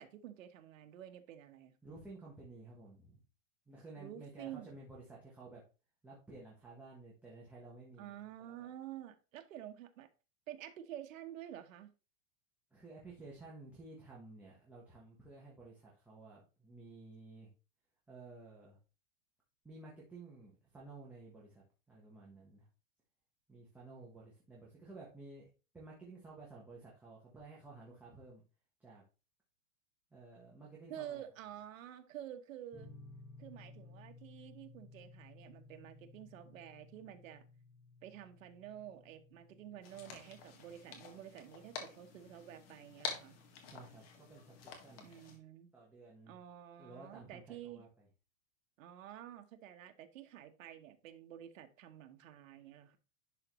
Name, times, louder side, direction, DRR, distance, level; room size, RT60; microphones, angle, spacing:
voice 1, 0.0-1.7 4.0-4.7 8.0-10.1 10.5-11.9 30.9-32.9 33.4-37.5 38.0-43.4 45.0-45.7 46.3-47.8 48.8-53.0, right 11 dB, 80° right, 1.1 m, -50 dB
voice 2, 1.8-3.2 3.7-5.6 6.0-8.2 8.6-8.7 12.7-17.5 18.1-18.8 19.6-22.7 23.5-25.5 25.7-28.4 28.8-29.0 30.1-31.2 43.6-45.1 45.7-46.4 46.8-48.1, right 3 dB, 5° right, 1.1 m, -54 dB
sound 1, 32.7-40.4, left 3 dB, 15° left, 1.6 m, -57 dB
sound 2, 39.8-45.4, left 6 dB, 50° left, 1.6 m, -48 dB
10.5 x 3.9 x 3.0 m
supercardioid pair, 170°, 39 cm